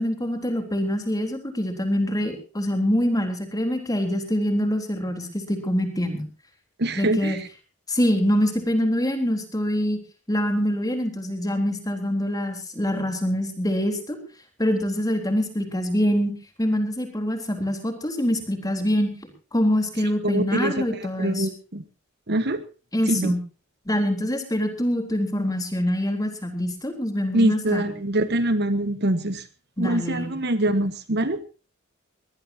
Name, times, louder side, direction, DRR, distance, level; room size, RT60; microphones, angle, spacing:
voice 1, 0.0-6.3 7.0-7.4 7.9-10.0 10.3-14.2 14.6-16.3 16.6-19.1 19.5-21.5 22.9-23.4 23.9-27.8 29.8-30.3, equal, 15° left, 5 dB, 3.7 m, -25 dB
voice 2, 6.8-7.4 20.2-21.8 22.3-22.6 23.1-23.3 27.3-29.4 29.8-31.4, right 1 dB, 50° right, 11 dB, 1.3 m, -24 dB
22.5 x 19.0 x 2.8 m, 0.34 s
head